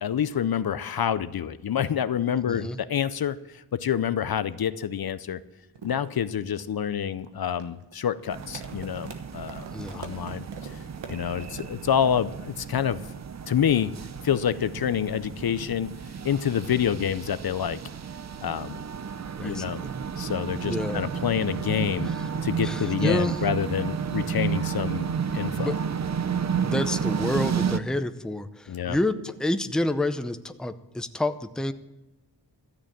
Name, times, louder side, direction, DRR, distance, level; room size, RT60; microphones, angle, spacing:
voice 1, 0.0-5.4 5.8-9.6 9.9-10.8 11.1-13.0 13.5-13.9 14.2-15.9 16.2-17.8 18.4-18.8 19.4-19.8 20.2-22.1 22.4-25.7 28.7-29.0, left 9 dB, 60° left, 14 dB, 0.6 m, -27 dB
voice 2, 2.5-2.8 9.7-10.0 19.4-19.9 20.7-21.1 22.0-22.2 22.6-23.4 25.6-25.8 26.6-31.7, left 1 dB, ahead, 9 dB, 0.6 m, -29 dB
sound 1, 5.7-14.1, right 5 dB, 90° right, 1.3 m, -45 dB
sound 2, 8.3-27.8, right 7 dB, 40° right, 0.6 m, -32 dB
13.5 x 6.8 x 8.9 m, 0.97 s
wide cardioid pair, 75°, 41 cm